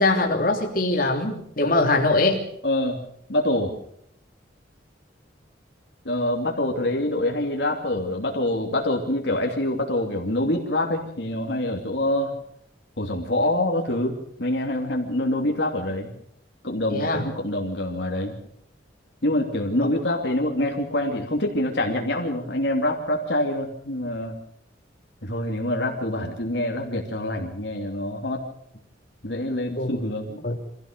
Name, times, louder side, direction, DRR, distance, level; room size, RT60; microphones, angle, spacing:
voice 1, 0.0-2.4 16.9-17.2 29.8-29.9 30.4-30.6, left 2 dB, 50° left, 1 dB, 3.1 m, -22 dB
voice 2, 2.6-3.0 3.3-3.7 6.0-12.3 13.0-16.1 16.6-18.3 19.2-24.4 25.2-28.4 29.2-30.4, left 1 dB, 65° left, 1 dB, 2.8 m, -25 dB
25.0 x 16.0 x 6.8 m, 0.71 s
head